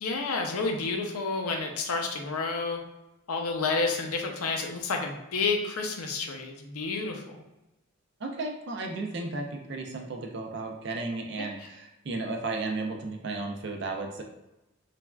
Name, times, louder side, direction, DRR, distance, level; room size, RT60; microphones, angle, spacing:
voice 1, 0.0-2.8 3.3-7.2 11.4-11.7, left 4 dB, 90° left, 3 dB, 0.5 m, -30 dB
voice 2, 8.2-14.2, right 3 dB, 55° right, 2 dB, 0.4 m, -34 dB
3.2 x 2.3 x 2.2 m, 0.96 s
head